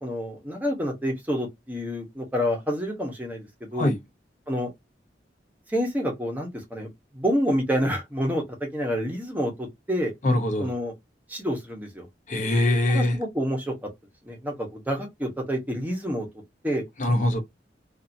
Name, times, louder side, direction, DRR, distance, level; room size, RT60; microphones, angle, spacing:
voice 1, 0.0-3.9 4.5-4.7 5.7-10.1 10.6-10.9 11.3-12.1 12.9-13.7 14.2-16.3 16.6-16.8, equal, 10° right, 0.9 m, -28 dB
voice 2, 10.2-10.7 12.3-13.2 17.0-17.4, left 1 dB, 45° left, 0.7 m, -22 dB
2.7 x 2.5 x 2.6 m
head